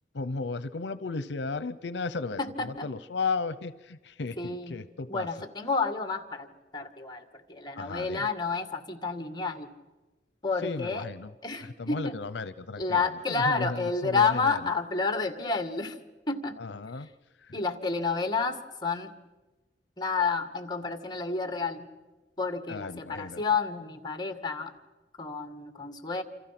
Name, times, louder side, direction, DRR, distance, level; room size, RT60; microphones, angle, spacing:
voice 1, 0.1-5.3 7.8-8.3 10.6-11.3 11.6-13.0 13.3-14.6 16.6-17.1 17.4-17.6 22.7-23.4, left 4 dB, 80° left, 15 dB, 0.7 m, -35 dB
voice 2, 2.4-2.9 4.4-4.8 5.1-6.5 6.7-9.7 10.4-11.1 11.4-12.2 12.8-16.0 16.3-16.6 17.5-19.1 20.0-21.9 22.4-24.7 25.2-26.2, left 4 dB, 25° left, 7 dB, 2.0 m, -30 dB
27.5 x 27.0 x 6.0 m, 1.2 s
head